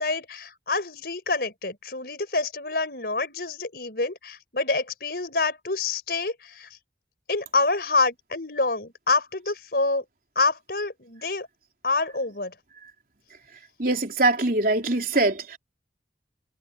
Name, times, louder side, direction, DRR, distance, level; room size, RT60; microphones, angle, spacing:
voice 1, 0.0-6.7 7.3-10.0 10.4-11.5 11.8-12.5, left 3 dB, 55° left, 5.2 m, -27 dB
voice 2, 13.8-15.6, right 2 dB, 50° right, 3.9 m, -23 dB
head